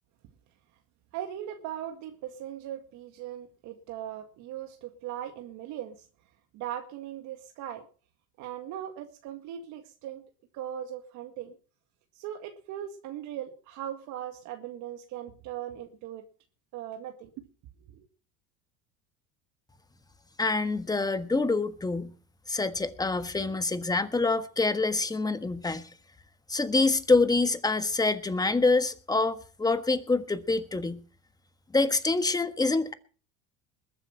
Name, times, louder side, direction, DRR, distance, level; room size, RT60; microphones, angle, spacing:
voice 1, 1.1-6.1 6.5-7.9 8.4-10.3 10.5-11.6 12.1-16.2 16.7-17.5 17.8-18.1, right 11 dB, 60° right, 2.0 m, -39 dB
voice 2, 20.4-22.1 22.5-25.9 26.5-31.0 31.7-32.9, left 3 dB, 10° left, 1.4 m, -26 dB
21.0 x 7.7 x 5.8 m
supercardioid pair, 95°, 32 cm